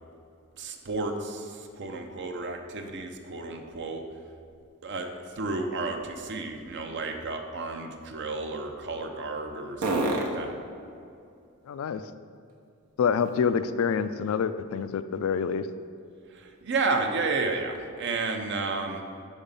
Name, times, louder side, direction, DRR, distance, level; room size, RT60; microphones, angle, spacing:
voice 1, 0.6-4.0 4.8-10.5 16.3-19.0, right 3 dB, 55° right, 4 dB, 0.6 m, -32 dB
sound 1, 10.6-13.9 14.3-18.1, right 1 dB, 80° right, 0.9 m, -39 dB
voice 2, 11.7-12.0 13.0-15.7, left 6 dB, 70° left, 12 dB, 0.3 m, -27 dB
5.4 x 4.8 x 5.3 m, 2.5 s
head